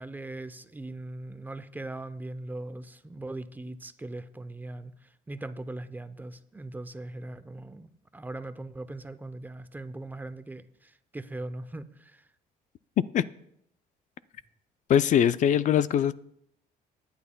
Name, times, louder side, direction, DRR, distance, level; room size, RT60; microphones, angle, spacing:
voice 1, 0.0-12.2, right 2 dB, 10° right, 0.5 m, -40 dB
voice 2, 14.9-16.1, left 9 dB, 50° left, 0.4 m, -22 dB
18.5 x 9.3 x 2.2 m
cardioid pair, 110°, 17 cm